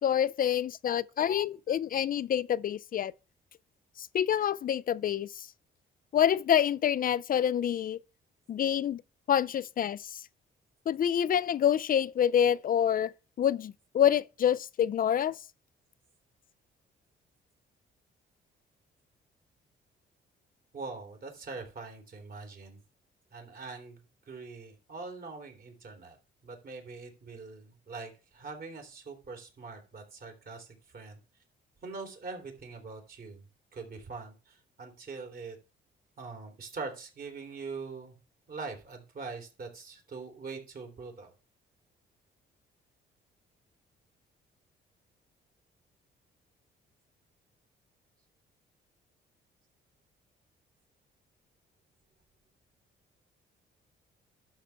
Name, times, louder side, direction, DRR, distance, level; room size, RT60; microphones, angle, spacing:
voice 1, 0.0-3.1 4.0-5.5 6.1-8.0 8.5-9.0 9.3-10.2 10.9-13.1 13.4-15.4, left 9 dB, 45° left, 0.4 m, -27 dB
voice 2, 20.7-22.8 23.3-24.0 24.3-26.2 26.4-31.2 31.8-33.4 33.7-35.6 36.2-38.2 38.5-41.3, right 4 dB, 50° right, 3.4 m, -43 dB
12.0 x 6.4 x 3.5 m
cardioid pair, 90°, 20 cm